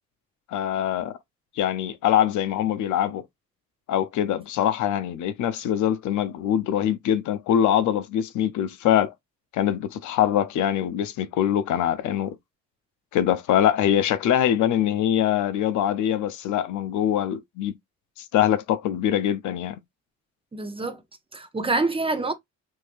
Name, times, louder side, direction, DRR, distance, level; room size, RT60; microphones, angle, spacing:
voice 1, 0.5-1.2 1.6-3.2 3.9-9.1 9.5-12.4 13.1-17.7 18.3-19.8, left 10 dB, 75° left, 0.5 m, -23 dB
voice 2, 20.5-21.0 21.3-22.3, right 3 dB, 20° right, 0.6 m, -26 dB
3.2 x 2.7 x 2.5 m
cardioid pair, 90°, 30 cm